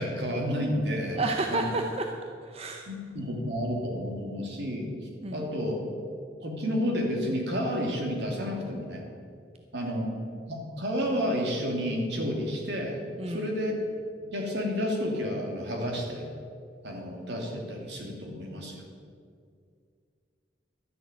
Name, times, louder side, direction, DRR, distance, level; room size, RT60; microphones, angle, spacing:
voice 1, 0.0-1.2 1.5-1.7 2.9-4.9 5.3-5.8 6.4-9.0 9.7-10.1 10.5-13.0 13.3-13.7 14.3-16.3 16.8-18.8, equal, 70° right, 0 dB, 2.7 m, -30 dB
voice 2, 1.1-2.1 2.4-2.9 5.2-5.4 13.2-13.5, right 2 dB, 35° right, 3 dB, 0.7 m, -30 dB
12.5 x 6.7 x 9.2 m, 2.2 s
head